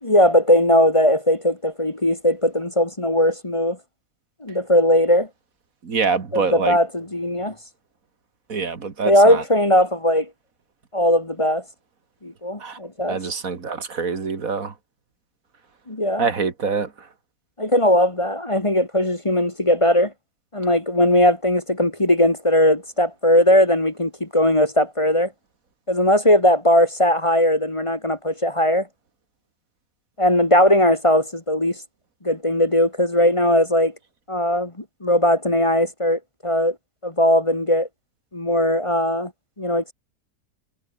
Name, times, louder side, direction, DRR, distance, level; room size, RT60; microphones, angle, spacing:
voice 1, 0.0-3.8 4.4-5.3 6.3-7.5 9.0-10.3 10.9-11.6 12.2-13.2 15.9-16.3 17.6-20.1 20.5-25.3 25.9-28.9 30.2-31.8 32.2-33.9 34.3-36.7 37.0-37.9 38.3-39.3 39.6-39.9, left 1 dB, 20° left, 1.8 m, -19 dB
voice 2, 5.8-6.8 8.5-9.4 12.6-12.8 13.1-14.7 16.2-17.1, right 5 dB, 70° right, 2.5 m, -25 dB
omnidirectional pair, 1.5 m